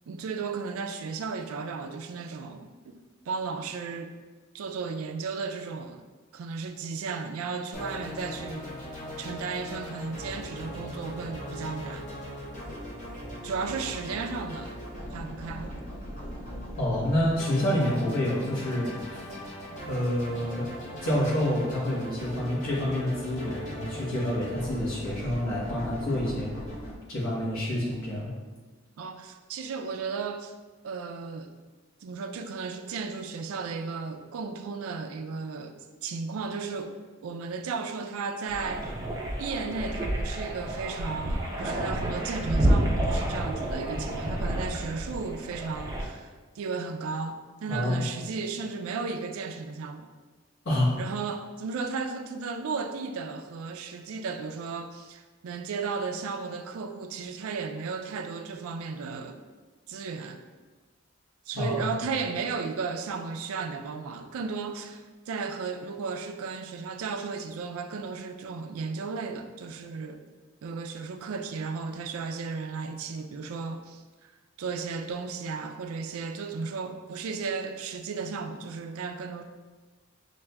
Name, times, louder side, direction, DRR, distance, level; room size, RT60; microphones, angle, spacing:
voice 1, 0.1-3.0 3.3-4.2 4.5-6.0 6.3-8.7 9.2-12.1 13.4-14.8 15.1-15.8 29.0-30.5 30.8-31.5 32.0-38.9 39.4-50.1 51.0-59.4 59.9-60.4 61.5-70.2 70.6-74.3 74.6-79.4, right 4 dB, 80° right, 6 dB, 0.4 m, -34 dB
sound 1, 7.7-26.9, equal, 35° left, 0.7 m, -39 dB
voice 2, 16.8-19.3 19.9-20.7 21.0-26.5 27.1-28.3 47.7-48.1 50.6-51.0 61.5-61.8, left 1 dB, 75° left, -8 dB, 1.2 m, -28 dB
sound 2, 38.5-46.0, right 1 dB, 15° right, 0.4 m, -29 dB
5.8 x 2.5 x 2.2 m, 1.3 s
head